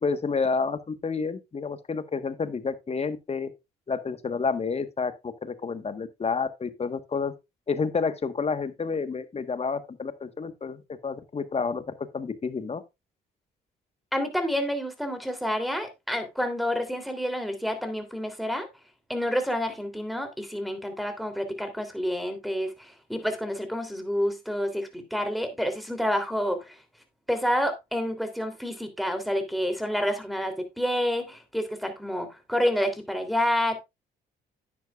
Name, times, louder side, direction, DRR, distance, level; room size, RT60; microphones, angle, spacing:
voice 1, 0.0-3.5 3.9-7.3 7.7-11.8 12.1-12.8, left 5 dB, 35° left, 1.5 m, -29 dB
voice 2, 14.1-18.7 19.1-26.8 27.3-33.8, equal, ahead, 3.2 m, -29 dB
10.0 x 9.8 x 2.5 m
supercardioid pair, 70°, 19 cm